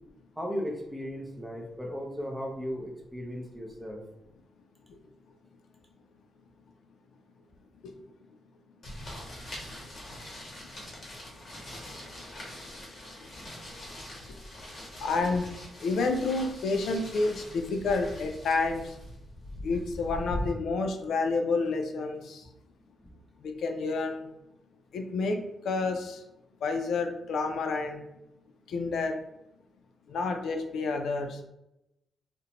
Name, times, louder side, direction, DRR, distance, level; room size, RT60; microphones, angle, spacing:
voice 1, 0.4-4.0 23.0-23.1, equal, 10° right, -1 dB, 0.5 m, -36 dB
sound 1, 8.8-20.5, left 1 dB, 45° left, 1.0 m, -42 dB
voice 2, 15.0-19.0 19.6-22.5 23.4-24.3 24.9-26.2 26.6-28.0 28.7-29.2 30.1-31.4, left 3 dB, 75° left, 4 dB, 0.3 m, -30 dB
2.5 x 2.1 x 2.8 m, 0.87 s
wide cardioid pair, 135°, 0 cm